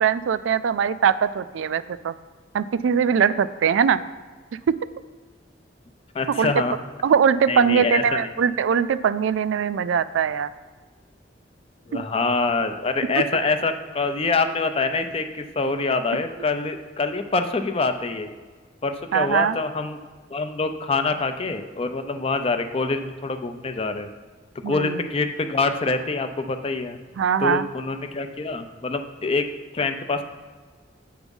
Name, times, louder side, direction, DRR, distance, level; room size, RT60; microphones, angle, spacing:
voice 1, 0.0-2.1 2.5-4.0 6.4-6.5 7.0-10.5 11.9-12.0 19.1-19.6 24.6-25.1 27.2-27.7, right 7 dB, 90° right, 14 dB, 0.3 m, -21 dB
voice 2, 6.1-6.7 7.5-8.3 11.9-18.3 18.8-20.0 20.3-24.1 24.7-27.0 27.4-29.5 29.7-30.2, left 3 dB, 30° left, 8 dB, 0.5 m, -25 dB
8.0 x 4.7 x 5.3 m, 1.4 s
head